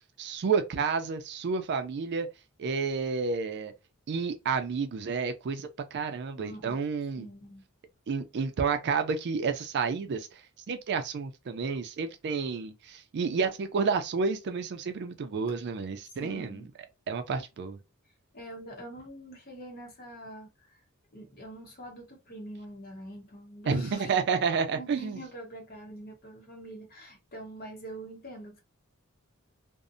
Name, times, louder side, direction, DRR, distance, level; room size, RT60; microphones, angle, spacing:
voice 1, 0.2-2.3 2.6-3.7 4.1-7.3 8.1-10.3 10.7-16.6 17.1-17.8 23.7-25.2, right 5 dB, 55° right, 0.4 m, -30 dB
voice 2, 6.4-6.8 7.2-7.6 16.2-16.7 18.3-20.8 21.1-24.2 24.7-28.6, right 1 dB, 45° left, 0.8 m, -45 dB
2.6 x 2.0 x 2.4 m
head